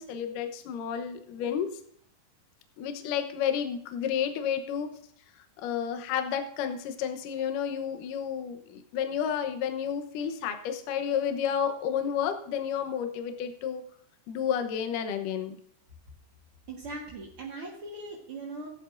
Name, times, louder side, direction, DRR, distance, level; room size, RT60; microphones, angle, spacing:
voice 1, 0.0-1.7 2.8-4.9 5.6-13.8 14.3-15.6, left 8 dB, 70° left, 7 dB, 2.0 m, -31 dB
voice 2, 16.7-18.7, right 2 dB, 55° right, -4 dB, 1.5 m, -40 dB
16.5 x 10.5 x 2.6 m, 0.65 s
omnidirectional pair, 5.1 m